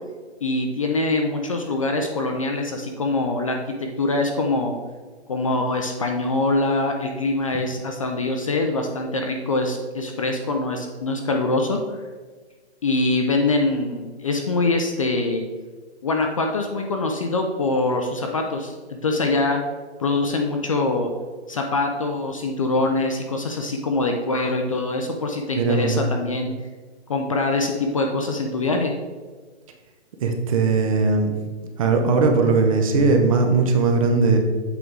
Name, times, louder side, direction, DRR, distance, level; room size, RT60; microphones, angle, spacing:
voice 1, 0.4-4.8 5.3-11.8 12.8-15.4 16.0-19.6 20.0-21.1 21.5-26.5 27.1-28.9, left 2 dB, 30° left, 3 dB, 0.4 m, -24 dB
voice 2, 25.5-26.0 30.2-31.4 31.8-34.4, right 4 dB, 30° right, 4 dB, 0.7 m, -19 dB
8.0 x 3.7 x 4.6 m, 1.4 s
hypercardioid pair, 160°, 34 cm